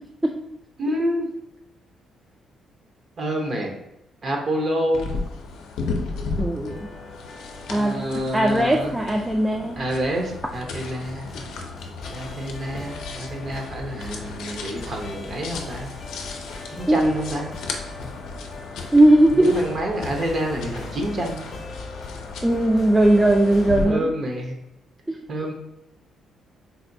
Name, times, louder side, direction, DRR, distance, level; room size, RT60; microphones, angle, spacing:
voice 1, 0.8-1.3 3.2-3.7 4.2-5.1 7.7-8.9 9.8-11.3 12.1-15.9 16.7-17.5 19.3-21.5 23.8-24.6 25.3-25.5, right 1 dB, 50° right, 2 dB, 0.7 m, -28 dB
sound 1, 4.9-23.8, left 4 dB, 85° left, 0.5 m, -35 dB
voice 2, 6.4-6.8 7.7-8.1 8.3-9.8 16.9-17.1 18.9-19.6 22.4-24.1 25.1-25.2, right 1 dB, 15° right, 1 dB, 0.3 m, -18 dB
sound 2, 6.7-23.9, left 3 dB, 40° left, 0.6 m, -41 dB
4.1 x 2.2 x 2.6 m, 0.85 s
cardioid pair, 90°, 0 cm